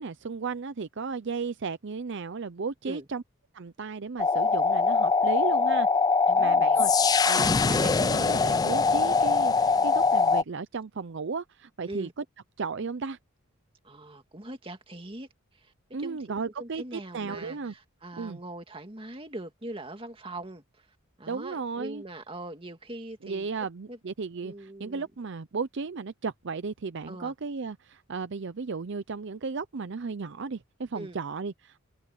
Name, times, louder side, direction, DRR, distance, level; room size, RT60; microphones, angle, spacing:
voice 1, 0.0-3.2 3.5-5.9 6.4-12.1 12.6-13.2 15.9-17.7 18.2-18.4 21.3-22.0 23.2-31.8, right 4 dB, 55° right, 0.6 m, -35 dB
sound 1, 4.2-10.4, left 4 dB, 20° left, 0.3 m, -22 dB
voice 2, 6.3-6.8 11.9-12.1 13.8-15.7 16.0-16.3 16.6-23.5 23.9-24.0 24.4-25.1 27.1-27.3 30.9-31.2, right 1 dB, 25° right, 2.2 m, -42 dB
head